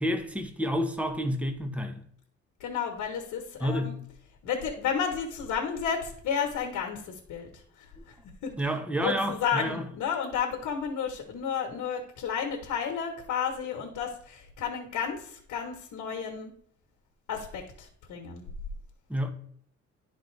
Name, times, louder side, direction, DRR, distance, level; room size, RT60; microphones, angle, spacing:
voice 1, 0.0-2.0 3.6-4.0 8.6-9.8 19.1-19.3, equal, 5° right, 1.0 m, -29 dB
voice 2, 2.6-4.0 4.4-7.5 7.8-8.2 8.4-8.5 9.0-16.5 17.3-18.4, left 7 dB, 80° left, 1.3 m, -32 dB
11.0 x 4.0 x 3.3 m
cardioid pair, 90°, 30 cm